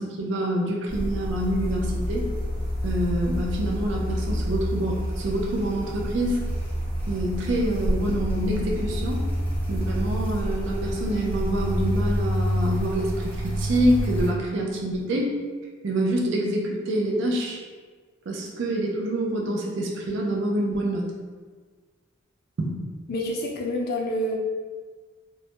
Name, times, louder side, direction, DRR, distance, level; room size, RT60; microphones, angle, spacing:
voice 1, 0.0-2.3 2.8-6.4 7.1-9.2 9.7-15.3 15.8-17.6 18.3-21.1 22.6-22.8, right 1 dB, 60° right, -2 dB, 0.4 m, -26 dB
sound 1, 0.9-14.3, equal, 10° right, 0.7 m, -28 dB
voice 2, 23.1-24.4, left 1 dB, 45° left, -1 dB, 0.4 m, -27 dB
2.2 x 2.1 x 2.8 m, 1.5 s
head